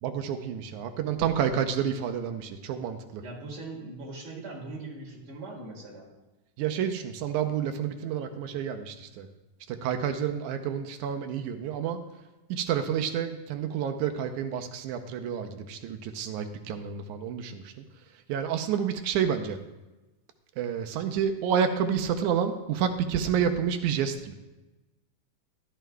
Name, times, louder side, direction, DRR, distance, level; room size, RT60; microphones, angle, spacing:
voice 1, 0.0-3.2 6.6-9.3 9.7-12.0 12.5-17.8 18.3-19.6 20.6-24.3, right 8 dB, 85° right, 6 dB, 2.1 m, -29 dB
voice 2, 3.2-6.1, right 2 dB, 60° right, -3 dB, 3.7 m, -40 dB
14.0 x 12.5 x 2.3 m, 1.1 s
omnidirectional pair, 3.4 m